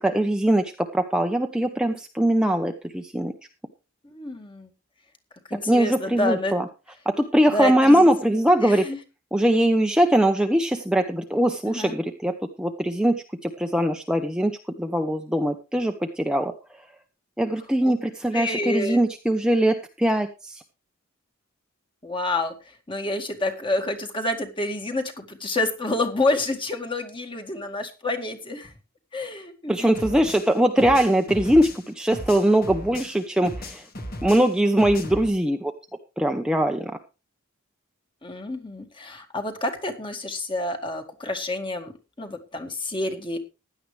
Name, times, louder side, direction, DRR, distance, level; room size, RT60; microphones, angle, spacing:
voice 1, 0.0-3.3 5.7-6.6 7.1-8.9 9.3-16.5 17.4-20.6 29.7-33.8 34.2-35.7 36.2-36.9, right 1 dB, 5° right, 4 dB, 0.8 m, -21 dB
voice 2, 4.0-4.7 5.5-6.5 7.5-8.1 8.6-9.0 11.7-12.0 17.8-17.9 18.3-19.0 22.0-22.5 22.9-28.7 29.1-30.2 38.2-43.4, left 2 dB, 25° left, 5 dB, 2.0 m, -28 dB
sound 1, 29.9-33.2 33.4-35.3, left 1 dB, 45° left, 2.0 m, -36 dB
16.0 x 11.0 x 3.3 m, 0.30 s
head